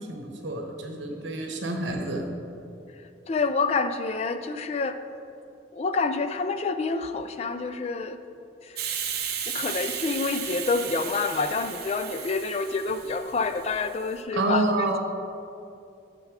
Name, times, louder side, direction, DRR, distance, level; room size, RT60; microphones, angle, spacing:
voice 1, 0.0-2.3 14.3-15.0, right 2 dB, 80° right, 2 dB, 1.1 m, -28 dB
voice 2, 3.3-5.0 5.7-8.2 8.6-8.8 9.5-15.0, left 4 dB, 35° left, 10 dB, 0.3 m, -28 dB
Hiss, 8.8-14.1, right 8 dB, 55° right, 0.8 m, -34 dB
7.6 x 6.5 x 4.8 m, 2.6 s
head